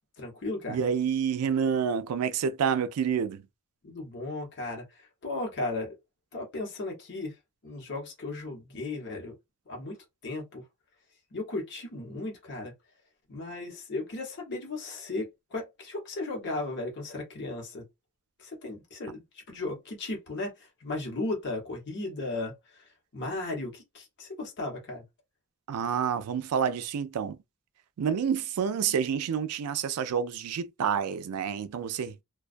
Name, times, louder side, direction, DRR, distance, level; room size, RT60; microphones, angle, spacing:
voice 1, 0.2-0.8 3.8-5.9 6.3-7.3 7.6-9.3 9.7-10.0 10.2-10.6 11.3-12.7 13.3-17.9 18.4-25.0, left 2 dB, 55° left, 1.0 m, -36 dB
voice 2, 0.7-3.4 25.7-27.4 28.0-32.2, right 7 dB, 80° right, 0.4 m, -28 dB
2.2 x 2.2 x 2.5 m
head